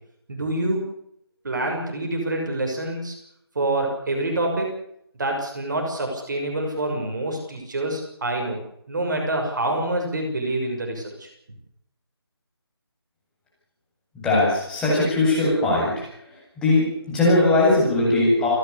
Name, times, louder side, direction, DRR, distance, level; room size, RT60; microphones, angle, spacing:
voice 1, 0.3-0.8 1.4-3.1 3.5-4.7 5.2-8.6 8.9-11.3, right 1 dB, 45° right, 2 dB, 6.5 m, -26 dB
voice 2, 14.1-16.0 16.6-18.5, left 2 dB, 5° left, -7 dB, 7.9 m, -20 dB
29.0 x 12.5 x 8.4 m, 0.73 s
figure-of-eight pair, 160°, 14 cm